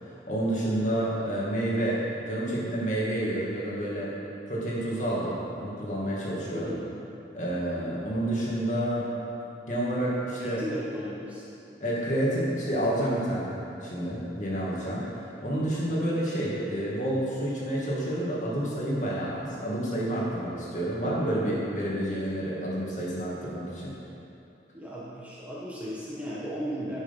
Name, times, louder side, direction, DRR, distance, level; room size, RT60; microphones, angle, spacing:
voice 1, 0.0-4.1 4.5-6.7 7.3-9.1 9.7-10.6 11.8-23.9, right 1 dB, 40° left, -6 dB, 2.4 m, -29 dB
voice 2, 6.4-6.9 10.4-11.4 24.7-27.0, equal, 10° right, -8 dB, 1.5 m, -36 dB
11.0 x 7.1 x 5.6 m, 2.8 s
head